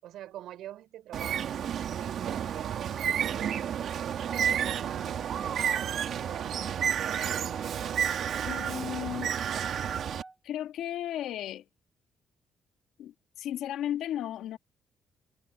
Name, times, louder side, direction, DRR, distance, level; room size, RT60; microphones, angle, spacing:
voice 1, 0.0-3.9 4.3-7.5, right 13 dB, 85° right, 5.7 m, -45 dB
Bird, 1.1-10.2, right 9 dB, 65° right, 1.8 m, -31 dB
Wind instrument woodwind instrument, 4.3-10.4, right 3 dB, 20° right, 4.9 m, -46 dB
voice 2, 8.4-9.3 10.4-11.7 13.0-14.6, left 11 dB, 85° left, 1.7 m, -35 dB
cardioid pair, 90°, 0 cm